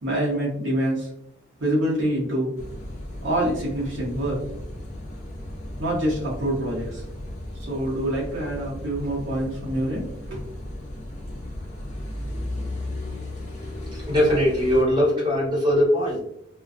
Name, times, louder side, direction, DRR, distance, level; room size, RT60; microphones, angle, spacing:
voice 1, 0.0-1.1 1.6-2.5 3.2-4.4 5.8-7.0 7.7-10.4, right 1 dB, 65° right, -5 dB, 0.7 m, -26 dB
Car passing by / Idling / Accelerating revving vroom, 2.6-14.8, left 1 dB, 35° left, 0.5 m, -35 dB
voice 2, 14.0-16.2, equal, 25° right, -5 dB, 1.1 m, -20 dB
2.4 x 2.2 x 2.4 m, 0.75 s
head